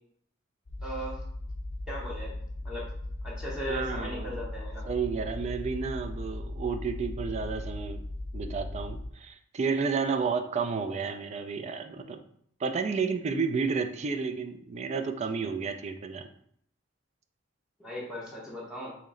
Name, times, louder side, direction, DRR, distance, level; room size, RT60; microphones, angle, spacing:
sound 1, 0.7-9.1, left 1 dB, 90° left, 0.6 m, -38 dB
voice 1, 0.8-1.2 1.9-2.4 2.6-2.9 3.2-4.8 17.8-18.9, equal, 5° right, -5 dB, 0.8 m, -37 dB
voice 2, 3.7-4.3 4.9-8.0 8.3-12.2 12.6-16.3, right 5 dB, 35° right, 7 dB, 0.3 m, -31 dB
3.1 x 2.9 x 3.7 m, 0.67 s
head